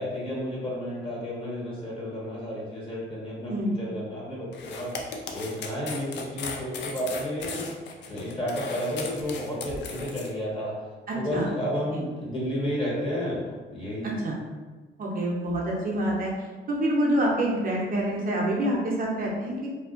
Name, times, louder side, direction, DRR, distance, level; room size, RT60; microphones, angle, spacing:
voice 1, 0.0-5.0 5.3-7.8 8.1-10.7 11.1-14.1, equal, 25° left, -6 dB, 1.0 m, -32 dB
sound 1, 4.5-10.3, left 4 dB, 60° left, 0.4 m, -37 dB
voice 2, 11.1-11.5 14.0-14.4 15.0-16.3 16.7-19.7, right 1 dB, 45° right, -3 dB, 0.6 m, -26 dB
2.5 x 2.1 x 2.4 m, 1.3 s
cardioid pair, 90°, 20 cm